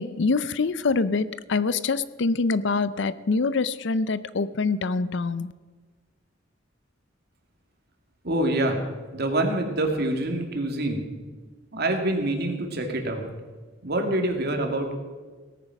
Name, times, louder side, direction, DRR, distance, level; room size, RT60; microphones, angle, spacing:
voice 1, 0.0-5.5, left 4 dB, 65° left, 16 dB, 0.6 m, -25 dB
voice 2, 8.2-8.8 9.1-11.1 11.7-13.3 13.8-14.9, right 1 dB, 55° right, 3 dB, 2.3 m, -26 dB
17.5 x 9.3 x 5.9 m, 1.4 s
head